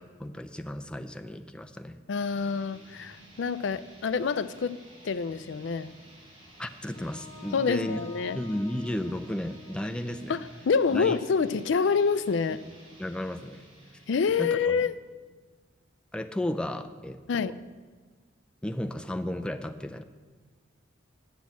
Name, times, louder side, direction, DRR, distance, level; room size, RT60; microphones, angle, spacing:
voice 1, 0.2-2.0 6.6-8.0 8.3-10.4 10.9-11.2 13.0-13.6 14.4-14.8 16.1-17.6 18.6-20.0, left 1 dB, 5° left, 6 dB, 0.4 m, -34 dB
voice 2, 2.1-4.8 5.0-5.9 7.5-8.4 10.3-12.6 14.1-15.0 17.3-17.6, left 5 dB, 65° left, 14 dB, 0.4 m, -27 dB
sound 1, 2.1-15.0, equal, 30° right, 4.2 m, -53 dB
Wind instrument woodwind instrument, 6.9-11.0, left 2 dB, 35° left, 1.3 m, -49 dB
10.0 x 6.2 x 8.5 m, 1.4 s
head